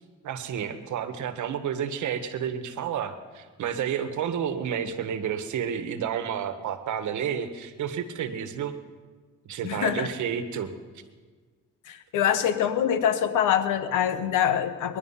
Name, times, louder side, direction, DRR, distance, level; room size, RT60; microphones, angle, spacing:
voice 1, 0.2-8.7 9.4-10.7, right 8 dB, 75° right, 9 dB, 1.4 m, -30 dB
voice 2, 9.6-10.1 11.9-15.0, left 9 dB, 85° left, 10 dB, 1.2 m, -24 dB
21.5 x 10.5 x 5.7 m, 1.5 s
cardioid pair, 90°, 30 cm